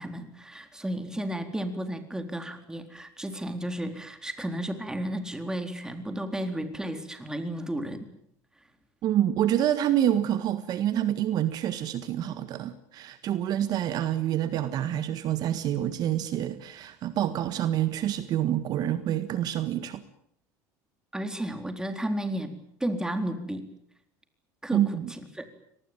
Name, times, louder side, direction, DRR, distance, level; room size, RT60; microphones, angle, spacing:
voice 1, 0.0-8.1 21.1-22.5 22.8-23.6 24.6-25.4, right 1 dB, 10° right, 7 dB, 4.0 m, -33 dB
voice 2, 9.0-20.0 24.7-25.1, right 11 dB, 50° right, 12 dB, 1.7 m, -27 dB
25.0 x 19.5 x 9.0 m, 0.71 s
supercardioid pair, 100°, 8 cm